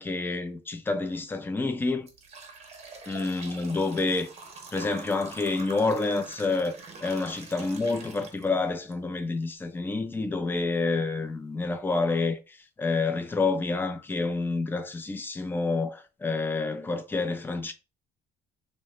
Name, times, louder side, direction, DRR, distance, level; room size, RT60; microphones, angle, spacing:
voice 1, 0.0-2.1 3.1-4.3 4.7-17.7, left 3 dB, 10° left, 0.4 m, -28 dB
sound 1, 1.1-1.3 1.8-8.9 9.4-9.5 10.3-10.4 10.9-11.0 11.5-11.7, right 4 dB, 40° right, 0.7 m, -45 dB
2.6 x 2.0 x 3.1 m
cardioid pair, 110°, 17 cm